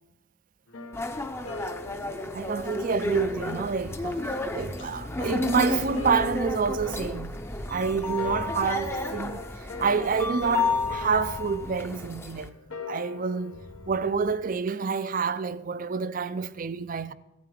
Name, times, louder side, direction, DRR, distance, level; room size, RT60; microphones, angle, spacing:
sound 1, 0.7-3.6 5.0-14.2, left 3 dB, 85° left, 1.3 m, -41 dB
sound 2, 0.9-12.5, left 2 dB, 10° left, 0.6 m, -32 dB
voice 1, 2.3-7.3 7.7-12.5 12.9-17.1, right 5 dB, 40° right, 0.4 m, -28 dB
sound 3, 3.0-3.5 3.8-4.2 4.5-6.9 7.3-9.2 10.6-12.0 13.4-14.5, equal, 60° left, 1.7 m, -44 dB
14.5 x 9.4 x 5.0 m
head